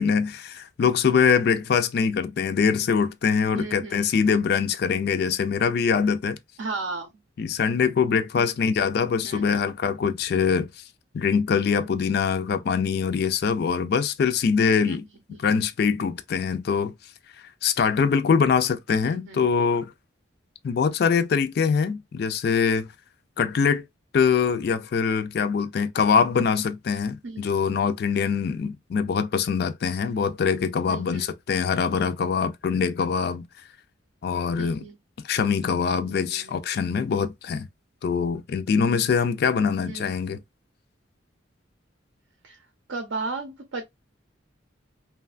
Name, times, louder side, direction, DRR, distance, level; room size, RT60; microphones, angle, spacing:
voice 1, 0.0-6.4 7.4-10.7 11.1-15.1 15.4-16.9 17.6-19.9 20.6-22.9 23.4-23.8 24.1-33.4 34.2-34.8 35.2-37.7 38.0-40.4, left 6 dB, 50° left, 0.3 m, -23 dB
voice 2, 3.5-4.1 6.6-7.1 8.3-8.5 9.2-9.7 14.9-15.0 15.3-15.4 19.0-19.5 27.2-27.7 30.9-31.3 34.6-35.0 36.0-36.6 39.8-40.2 42.4-42.6 42.9-43.8, right 3 dB, 80° right, 0.6 m, -35 dB
3.1 x 2.2 x 2.4 m
head